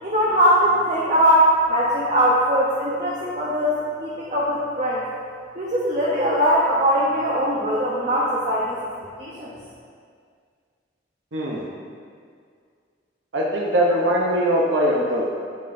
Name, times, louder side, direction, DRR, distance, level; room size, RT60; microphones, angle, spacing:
voice 1, 0.0-5.0 5.5-8.8 9.2-9.5, equal, 40° right, -6 dB, 0.8 m, -20 dB
voice 2, 11.3-11.7 13.3-15.3, equal, 75° right, -3 dB, 0.8 m, -21 dB
8.8 x 6.9 x 2.6 m, 2.1 s
head